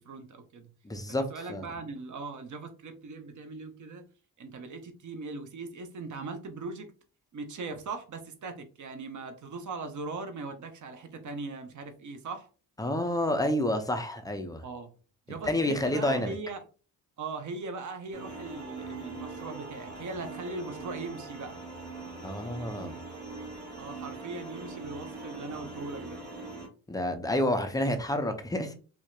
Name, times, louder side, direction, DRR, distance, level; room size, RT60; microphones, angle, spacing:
voice 1, 0.0-0.7 1.1-4.0 4.4-6.9 7.3-12.5 14.6-14.9 15.3-16.6 17.2-21.6 22.7-23.0 23.8-26.2, right 3 dB, 40° right, 0.6 m, -40 dB
voice 2, 0.8-1.7 12.8-14.6 15.4-16.3 22.2-22.9 26.9-28.7, left 1 dB, 10° left, 0.3 m, -29 dB
sound 1, 18.1-26.7, right 3 dB, 20° right, 1.2 m, -42 dB
2.7 x 2.1 x 2.2 m
supercardioid pair, 55°, 47 cm